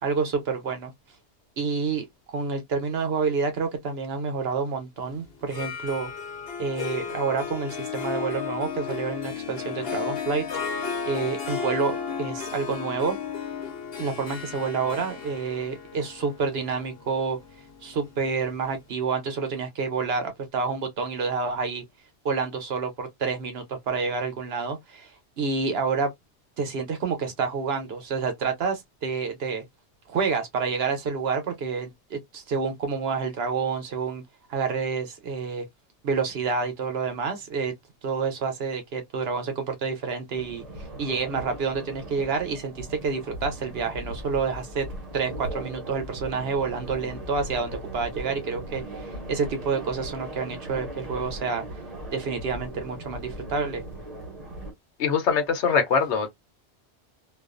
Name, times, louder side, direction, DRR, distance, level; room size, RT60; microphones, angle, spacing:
voice 1, 0.0-0.9 1.6-6.1 6.6-10.5 11.1-13.2 14.0-17.4 17.8-21.8 22.2-25.1 25.4-26.1 26.6-29.6 30.1-34.2 34.5-35.7 36.0-37.7 38.0-40.6 41.0-44.9 45.1-51.6 52.1-53.8, right 5 dB, 65° right, 1.0 m, -28 dB
Harp, 5.4-18.3, left 6 dB, 60° left, 1.0 m, -34 dB
sound 1, 40.3-54.7, right 1 dB, 35° right, 0.9 m, -38 dB
voice 2, 55.0-56.3, left 6 dB, 85° left, 1.0 m, -22 dB
2.4 x 2.3 x 2.4 m
omnidirectional pair, 1.1 m